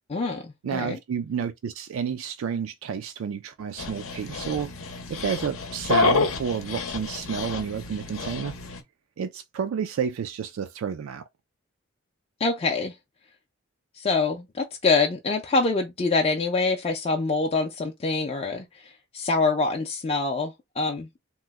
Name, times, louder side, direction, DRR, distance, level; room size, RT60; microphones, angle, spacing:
voice 1, 0.1-1.0 12.4-12.9 14.0-18.8 19.1-21.1, left 3 dB, 30° left, 0.4 m, -25 dB
voice 2, 0.6-8.6 9.2-11.2, right 7 dB, 70° right, 0.3 m, -30 dB
Dog, 3.8-8.8, left 4 dB, 70° left, 0.7 m, -29 dB
2.9 x 2.0 x 3.4 m
head